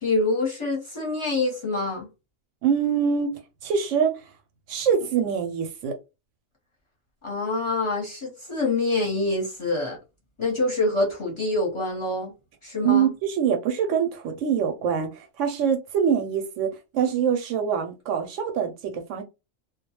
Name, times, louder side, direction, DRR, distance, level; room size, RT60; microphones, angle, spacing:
voice 1, 0.0-2.1 7.2-10.0 10.4-12.3 12.6-13.1, left 2 dB, 25° left, 0.8 m, -26 dB
voice 2, 2.6-3.3 3.6-4.1 4.7-5.9 12.8-16.7 16.9-19.2, right 7 dB, 70° right, 0.8 m, -24 dB
2.3 x 2.2 x 2.9 m
omnidirectional pair, 1.4 m